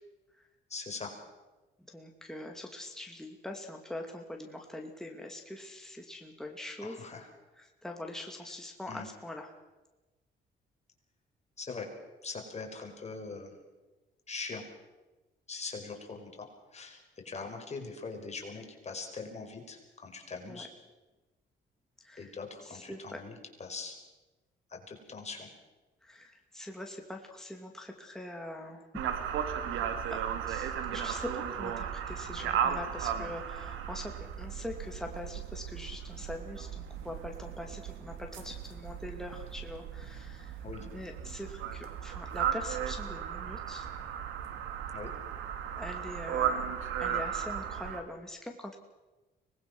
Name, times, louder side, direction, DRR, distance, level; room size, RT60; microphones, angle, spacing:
voice 1, 0.7-1.1 6.8-7.3 8.9-9.0 11.6-11.9 12.2-13.5 14.3-14.6 15.5-20.7 22.2-24.0 24.7-25.5 40.6-40.9 44.9-45.1, left 4 dB, 35° left, 3 dB, 5.0 m, -42 dB
voice 2, 1.9-7.0 7.6-9.6 20.5-20.7 22.0-22.3 22.6-23.2 26.0-28.9 29.6-30.2 30.5-43.9 45.7-48.8, left 1 dB, ahead, 2 dB, 2.6 m, -43 dB
sound 1, 28.9-48.0, right 8 dB, 90° right, 2.0 m, -36 dB
24.5 x 20.0 x 6.2 m, 1.1 s
cardioid pair, 90°, 20 cm